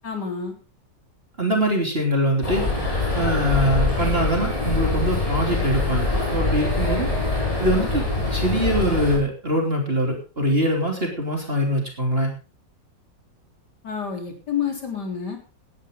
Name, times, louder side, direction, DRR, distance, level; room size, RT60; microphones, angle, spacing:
voice 1, 0.0-0.5 13.8-15.4, left 7 dB, 65° left, 3 dB, 4.3 m, -28 dB
voice 2, 1.4-2.9 3.1-7.1 7.6-12.3, equal, 30° right, 1 dB, 3.3 m, -23 dB
sound 1, 2.4-9.2, left 3 dB, 20° left, 5.7 m, -24 dB
19.0 x 11.0 x 3.8 m, 0.33 s
omnidirectional pair, 2.0 m